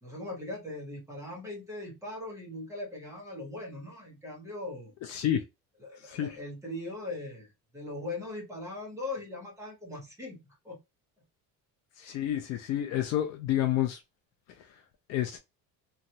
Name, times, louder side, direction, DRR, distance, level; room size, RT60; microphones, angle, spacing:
voice 1, 0.0-4.9 5.8-10.8, left 2 dB, 10° right, 0.8 m, -40 dB
voice 2, 5.1-5.4 6.0-6.4 12.0-14.0 15.1-15.4, left 12 dB, 45° left, 0.4 m, -29 dB
3.0 x 2.3 x 2.7 m
cardioid pair, 170°, 37 cm